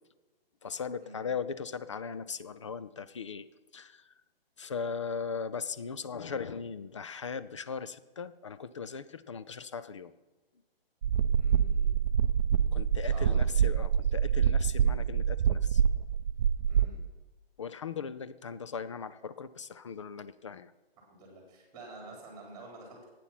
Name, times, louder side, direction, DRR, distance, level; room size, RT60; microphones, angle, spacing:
voice 1, 0.6-3.5 3.7-4.0 4.6-10.1 12.7-15.8 17.6-20.7, left 6 dB, 30° left, 14 dB, 0.4 m, -38 dB
sound 1, 11.0-16.9, right 8 dB, 45° right, 0.6 m, -26 dB
voice 2, 11.4-11.9 13.1-13.5 16.7-17.0 19.9-20.0 21.1-23.1, right 2 dB, 15° right, 0 dB, 3.9 m, -49 dB
12.5 x 8.9 x 5.8 m, 1.2 s
hypercardioid pair, 160°, 30 cm